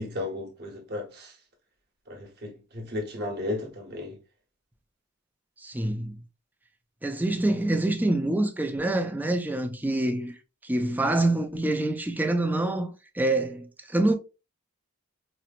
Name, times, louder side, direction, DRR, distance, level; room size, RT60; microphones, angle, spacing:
voice 1, 0.0-1.3 2.1-4.2, left 2 dB, 50° right, 1.1 m, -34 dB
voice 2, 5.6-6.1 7.0-10.3 10.6-14.1, right 2 dB, 10° right, 0.4 m, -26 dB
4.3 x 2.0 x 2.5 m
head